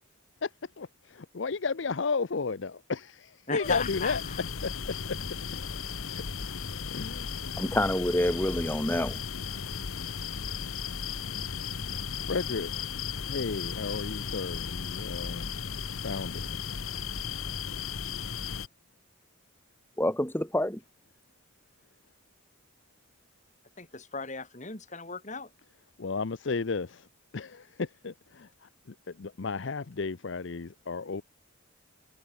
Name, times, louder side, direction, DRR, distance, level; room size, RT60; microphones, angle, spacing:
voice 1, 0.8-4.2 4.6-5.2 5.9-6.2 6.9-7.3 12.2-12.7 13.3-15.4 16.0-16.6 26.0-27.1 27.3-28.7 29.1-31.2, left 4 dB, 60° left, 0.6 m, -33 dB
voice 2, 3.5-4.4 23.8-25.5, left 4 dB, 35° left, 3.2 m, -36 dB
sound 1, 3.6-18.7, left 6 dB, 85° left, 1.2 m, -35 dB
voice 3, 7.6-9.2 20.0-20.8, left 1 dB, 10° left, 2.0 m, -27 dB
head